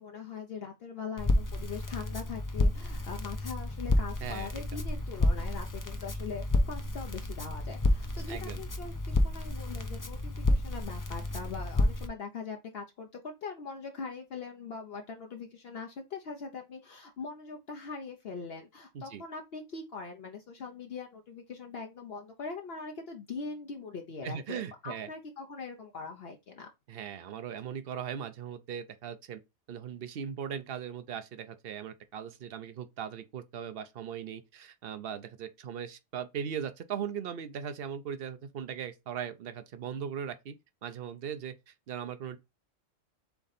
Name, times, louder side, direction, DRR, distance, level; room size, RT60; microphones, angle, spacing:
voice 1, 0.0-26.7, left 5 dB, 65° left, 0.9 m, -42 dB
Crackle, 1.2-12.1, left 2 dB, 25° left, 0.4 m, -30 dB
voice 2, 8.3-8.6 18.9-19.2 24.2-25.1 26.9-29.4 29.7-40.5 40.8-42.4, right 8 dB, 60° right, 0.8 m, -39 dB
3.8 x 3.5 x 4.0 m
omnidirectional pair, 1.2 m